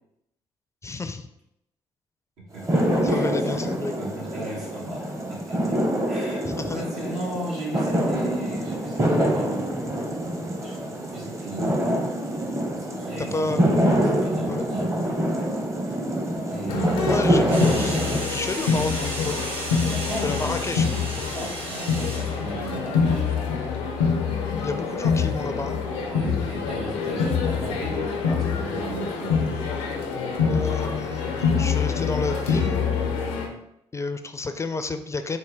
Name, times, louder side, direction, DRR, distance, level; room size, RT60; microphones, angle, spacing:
voice 1, 0.8-1.3 3.0-3.9 6.4-6.8 13.2-13.6 14.5-14.7 17.1-19.4 20.2-20.9 24.6-25.8 30.4-32.8 33.9-35.4, left 3 dB, 25° left, 9 dB, 0.4 m, -30 dB
voice 2, 2.4-5.8 6.1-6.4 6.7-10.0 10.6-12.0 12.8-15.0 16.5-17.5 19.9-20.8 21.3-23.3 26.0-29.4, right 2 dB, 85° right, -6 dB, 1.5 m, -36 dB
sound 1, 2.5-18.2, equal, 25° right, 0.7 m, -25 dB
sound 2, 16.7-33.5, left 5 dB, 90° left, 0.5 m, -26 dB
sound 3, 17.5-22.8, right 1 dB, 55° right, 1.4 m, -34 dB
4.4 x 2.2 x 3.4 m, 0.79 s
supercardioid pair, 55°, 11 cm